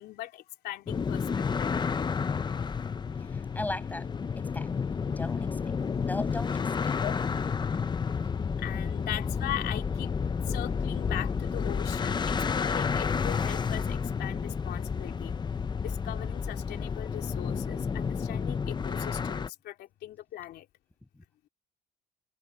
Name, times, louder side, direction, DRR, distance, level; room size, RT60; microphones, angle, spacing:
voice 1, 0.0-1.7 2.2-2.3 7.0-7.1 8.5-10.1 10.5-15.4 15.8-20.7, left 13 dB, 75° left, 3.5 m, -40 dB
sound 1, 0.9-19.5, left 6 dB, 25° left, 0.7 m, -31 dB
voice 2, 3.2-4.7 5.1-5.6 6.0-7.0 21.1-21.2, left 2 dB, 10° left, 7.9 m, -38 dB
cardioid pair, 110°, 17 cm